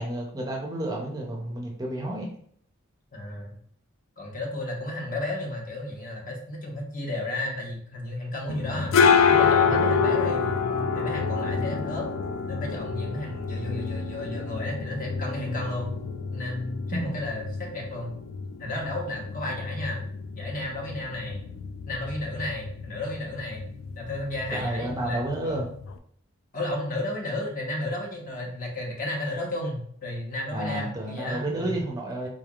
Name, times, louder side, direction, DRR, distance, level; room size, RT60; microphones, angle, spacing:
voice 1, 0.0-2.3 16.9-17.0 24.5-25.7 30.5-32.3, right 1 dB, 20° right, -1 dB, 0.5 m, -31 dB
voice 2, 3.1-3.5 4.2-8.9 9.3-12.1 12.5-15.9 16.3-18.1 18.6-20.0 20.3-21.4 21.9-23.6 24.0-25.6 26.5-31.8, left 1 dB, 40° left, -1 dB, 1.0 m, -33 dB
sound 1, 8.5-26.0, left 5 dB, 65° left, 0.3 m, -27 dB
3.8 x 3.3 x 2.4 m, 0.62 s
head